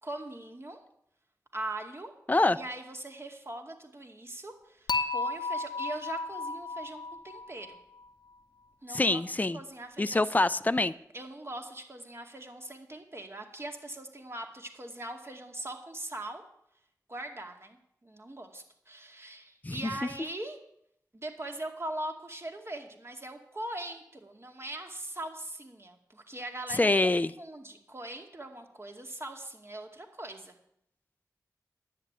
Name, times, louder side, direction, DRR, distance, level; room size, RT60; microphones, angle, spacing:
voice 1, 0.0-0.8 1.5-2.1 2.5-7.8 8.8-9.2 9.5-10.4 11.1-16.4 17.1-20.6 21.1-27.1 27.4-30.5, right 1 dB, 35° right, 4 dB, 2.3 m, -41 dB
Dishes pots and pans / Chink clink, 4.9-8.0, left 3 dB, 75° left, 0.8 m, -34 dB
voice 2, 8.9-9.6 10.0-10.9 19.6-19.8 26.8-27.3, left 2 dB, 25° left, 13 dB, 0.6 m, -25 dB
10.5 x 8.4 x 9.0 m, 0.74 s
cardioid pair, 40°, 7 cm